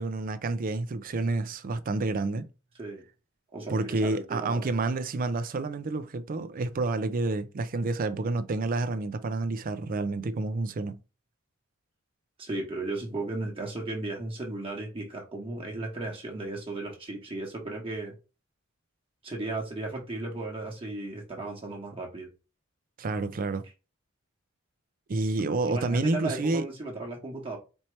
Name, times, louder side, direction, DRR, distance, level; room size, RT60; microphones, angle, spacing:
voice 1, 0.0-2.5 3.7-11.0 23.0-23.6 25.1-26.6, right 3 dB, 45° right, 0.4 m, -29 dB
voice 2, 3.5-4.7 12.4-18.1 19.2-22.3 25.7-27.6, right 2 dB, 25° right, 1.1 m, -35 dB
4.4 x 2.8 x 3.1 m
head